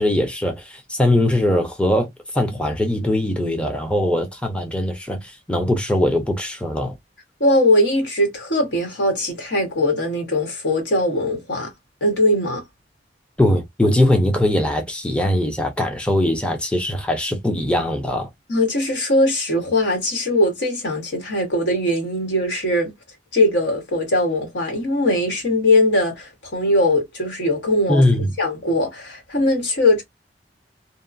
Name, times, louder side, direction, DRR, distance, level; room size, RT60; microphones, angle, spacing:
voice 1, 0.0-7.0 13.4-18.3 27.9-28.3, left 1 dB, 5° left, 0.5 m, -21 dB
voice 2, 7.4-11.7 12.0-12.6 18.5-22.9 23.3-28.1 28.4-30.0, left 1 dB, 85° left, 1.3 m, -20 dB
2.8 x 2.2 x 2.5 m
head